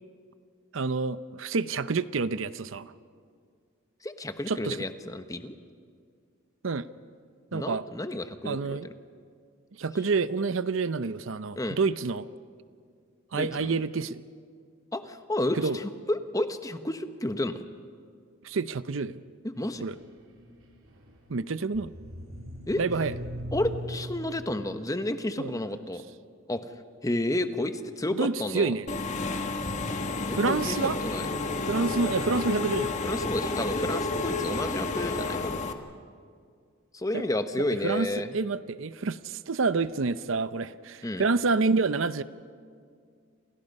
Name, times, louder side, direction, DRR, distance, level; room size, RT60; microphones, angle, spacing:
voice 1, 0.7-2.9 4.5-4.8 6.6-6.9 7.5-7.9 8.4-8.9 9.8-12.3 13.3-14.2 15.5-15.8 18.4-19.2 19.8-20.0 21.3-21.9 22.8-23.1 25.4-25.6 28.1-28.9 30.3-31.0 31.7-33.0 37.1-37.2 37.8-42.2, right 4 dB, 70° right, 14 dB, 0.7 m, -28 dB
voice 2, 4.0-5.5 7.5-8.8 11.6-11.8 13.3-13.7 14.9-17.6 19.4-19.8 22.7-22.8 23.5-26.0 26.5-26.6 27.0-28.7 30.2-30.8 31.0-31.3 33.0-35.6 36.9-38.3 41.0-41.2, left 1 dB, 15° left, 9 dB, 1.1 m, -31 dB
sound 1, 19.5-24.8, equal, 85° right, 3.7 m, -41 dB
Engine / Mechanisms, 28.9-35.7, left 3 dB, 35° left, 1.5 m, -30 dB
28.5 x 28.5 x 5.4 m, 2.2 s
head